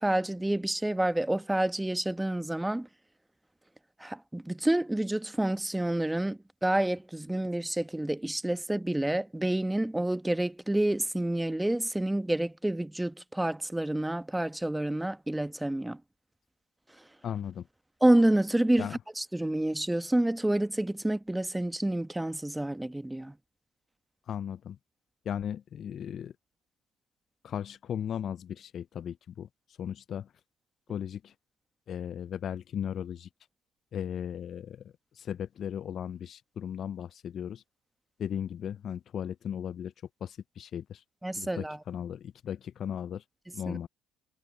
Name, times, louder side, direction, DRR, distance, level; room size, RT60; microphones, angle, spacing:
voice 1, 0.0-2.9 4.0-16.0 17.0-17.1 18.0-23.3 41.2-41.8 43.7-43.8, right 1 dB, 10° right, 1.2 m, -28 dB
voice 2, 17.2-17.7 18.8-19.0 24.3-24.8 25.3-26.3 27.4-29.5 29.8-30.3 30.9-31.3 31.9-33.3 33.9-37.6 38.2-39.9 40.2-41.0 41.4-43.2 43.5-43.9, left 9 dB, 55° left, 0.4 m, -36 dB
hypercardioid pair, 65°, 0 cm